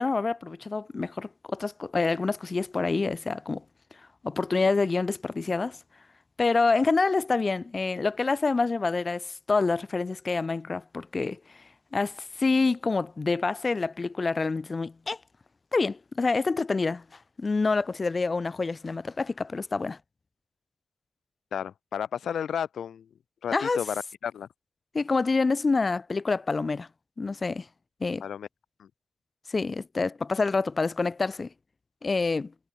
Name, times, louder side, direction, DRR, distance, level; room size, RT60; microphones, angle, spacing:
voice 1, 0.0-3.6 4.2-5.8 6.4-11.4 11.9-15.2 15.7-17.0 17.4-20.0 23.5-23.8 24.9-26.9 27.2-27.7 28.0-28.2 29.5-31.5 32.0-32.5, left 3 dB, 35° left, 0.4 m, -27 dB
voice 2, 21.5-23.1 23.4-24.5 28.2-28.5 28.8-28.9, left 8 dB, 85° left, 1.0 m, -32 dB
cardioid pair, 95°, 0 cm